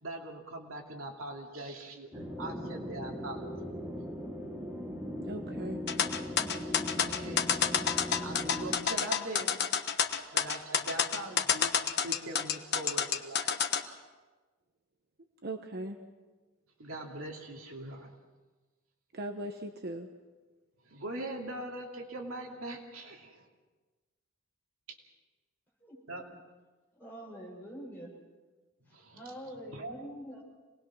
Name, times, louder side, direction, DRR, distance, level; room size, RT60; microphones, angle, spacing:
voice 1, 0.0-3.5 6.7-7.9 8.2-9.6 10.3-11.7 12.0-13.6 16.8-18.2 20.9-23.5 26.1-26.2 28.9-29.3 29.7-30.0, right 1 dB, 75° right, 1 dB, 2.7 m, -42 dB
sound 1, 2.1-8.8, equal, 10° right, 3.2 m, -39 dB
voice 2, 5.2-5.8 15.4-16.0 19.1-20.1, right 1 dB, 50° right, 5 dB, 1.1 m, -39 dB
sound 2, 5.9-13.8, left 8 dB, 50° left, 1.2 m, -29 dB
voice 3, 25.8-26.2 26.9-28.1 28.9-30.4, equal, 10° left, -4 dB, 6.9 m, -46 dB
27.0 x 19.5 x 6.2 m, 1.3 s
head